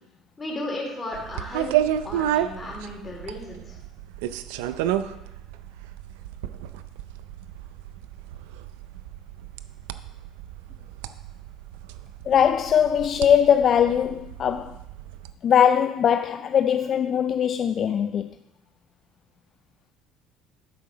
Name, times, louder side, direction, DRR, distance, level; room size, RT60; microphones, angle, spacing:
voice 1, 0.4-1.7 2.0-3.8, left 1 dB, 20° left, 3.2 m, -34 dB
sound 1, 1.1-15.3, right 11 dB, 85° right, 0.4 m, -32 dB
voice 2, 12.3-14.8 15.4-18.3, left 8 dB, 45° left, 0.3 m, -21 dB
11.5 x 4.6 x 5.0 m
supercardioid pair, 95°, 0 cm